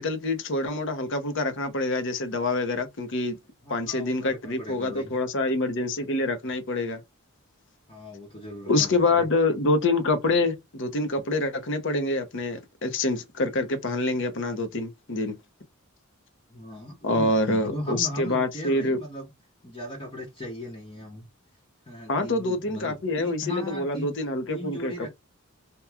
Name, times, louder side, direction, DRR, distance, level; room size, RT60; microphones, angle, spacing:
voice 1, 0.0-3.4 3.7-7.0 8.7-15.4 17.0-19.0 22.1-25.1, left 2 dB, 60° left, 0.8 m, -26 dB
voice 2, 3.6-5.1 7.9-9.3 16.5-19.3 19.6-21.3 21.9-24.1 24.5-25.1, equal, 25° left, 0.9 m, -37 dB
3.0 x 2.2 x 3.4 m
head